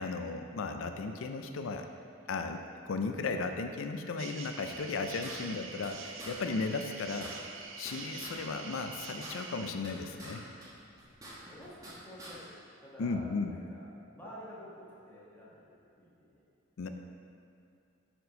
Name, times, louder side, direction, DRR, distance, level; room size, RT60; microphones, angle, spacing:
voice 1, 0.0-1.9 2.3-7.3 7.8-10.5 13.0-13.5 16.8-16.9, left 4 dB, 80° left, 6 dB, 0.4 m, -35 dB
sound 1, 4.2-9.7, right 5 dB, 75° right, 0.6 m, -45 dB
sound 2, 4.7-5.9 6.2-6.3 6.6-6.7 6.9-8.4 8.7-10.3 10.6-11.9 12.2-12.3, right 1 dB, 15° right, 1.2 m, -48 dB
voice 2, 11.3-16.4, equal, 10° left, -8 dB, 1.3 m, -50 dB
6.7 x 4.4 x 5.1 m, 2.5 s
head